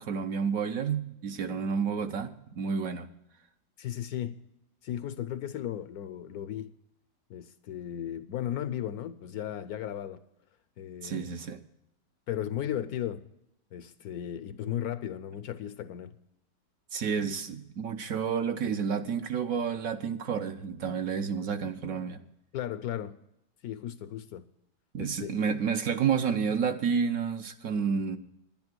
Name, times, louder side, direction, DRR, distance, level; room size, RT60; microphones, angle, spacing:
voice 1, 0.0-3.1 11.0-11.6 16.9-22.2 24.9-28.2, right 6 dB, 60° right, 1.0 m, -30 dB
voice 2, 3.8-4.4 4.8-6.7 7.3-10.2 10.8-11.3 12.3-13.3 13.7-16.2 22.5-23.2 23.6-24.4 25.0-25.4, left 11 dB, 70° left, 1.0 m, -35 dB
10.5 x 10.5 x 6.1 m
omnidirectional pair, 1.9 m